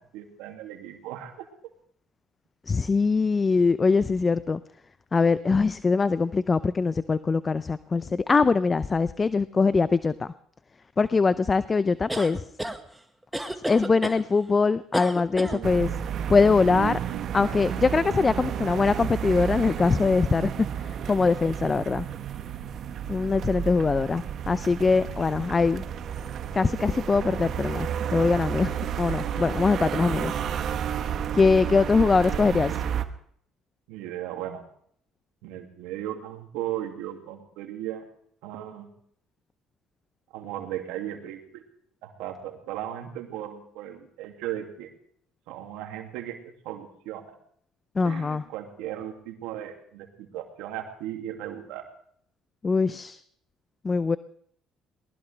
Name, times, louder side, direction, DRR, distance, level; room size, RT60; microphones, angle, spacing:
voice 1, 0.0-1.5 15.4-15.8 16.7-17.6 18.4-18.7 32.4-32.8 33.9-34.6 35.4-38.1 38.4-38.9 40.3-41.6 42.0-44.9 45.5-46.4 46.6-47.4 48.0-51.9, right 12 dB, 80° right, 4 dB, 2.4 m, -37 dB
voice 2, 2.7-4.6 5.1-10.3 11.0-12.5 13.7-15.9 16.3-17.0 17.3-20.5 20.8-22.1 23.1-25.8 26.5-30.4 31.3-32.7 48.0-48.4 52.6-53.2 53.8-54.2, left 4 dB, 30° left, 15 dB, 0.5 m, -22 dB
sound 1, 12.1-12.8 13.3-14.2 14.9-15.6, right 1 dB, 5° right, 1.7 m, -31 dB
sound 2, 15.6-33.1, right 9 dB, 60° right, 1.1 m, -31 dB
22.0 x 19.5 x 3.4 m, 0.66 s
supercardioid pair, 70°, 0 cm